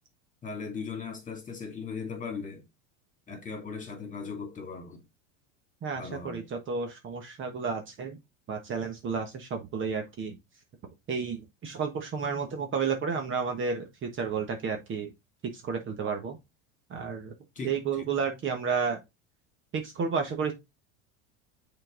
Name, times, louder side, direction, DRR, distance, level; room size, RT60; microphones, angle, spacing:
voice 1, 0.4-2.6 3.3-5.0 6.0-6.4 17.6-17.7 18.0-18.1, left 5 dB, 20° left, 2.4 m, -38 dB
voice 2, 5.8-8.2 8.5-10.4 11.1-15.1 15.4-16.4 16.9-17.3 17.6-19.0 19.7-20.5, right 5 dB, 35° right, 1.3 m, -31 dB
6.4 x 4.0 x 3.7 m
supercardioid pair, 115°, 36 cm